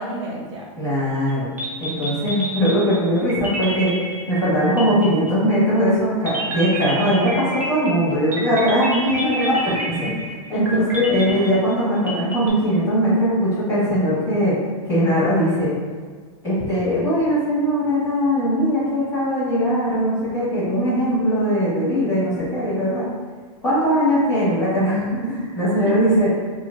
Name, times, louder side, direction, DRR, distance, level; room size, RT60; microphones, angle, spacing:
voice 1, 0.0-0.6 9.0-11.0 11.3-11.5 25.8-25.9, right 1 dB, 60° right, -3 dB, 0.8 m, -31 dB
voice 2, 0.8-1.5 1.8-3.9 4.3-9.5 10.5-14.6 14.9-15.7 16.4-23.0 23.6-26.3, equal, 15° left, -10 dB, 1.5 m, -20 dB
sound 1, 1.3-1.4 1.6-5.6 6.3-12.5, right 1 dB, 10° right, 0.5 m, -30 dB
4.3 x 2.0 x 2.5 m, 1.5 s
supercardioid pair, 150°, 18 cm